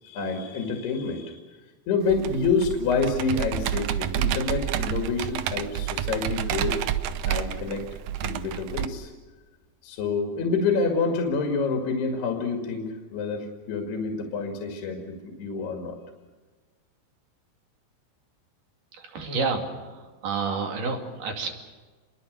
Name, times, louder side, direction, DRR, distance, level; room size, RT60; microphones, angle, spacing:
voice 1, 0.0-1.5 1.9-6.8 7.3-7.8 8.2-9.1 9.8-16.0, left 4 dB, 75° left, 2 dB, 4.3 m, -27 dB
Computer keyboard, 2.1-8.8, right 11 dB, 70° right, 2.3 m, -29 dB
voice 2, 18.9-21.5, right 4 dB, 55° right, 3 dB, 4.0 m, -30 dB
29.0 x 22.0 x 6.7 m, 1.4 s
omnidirectional pair, 4.7 m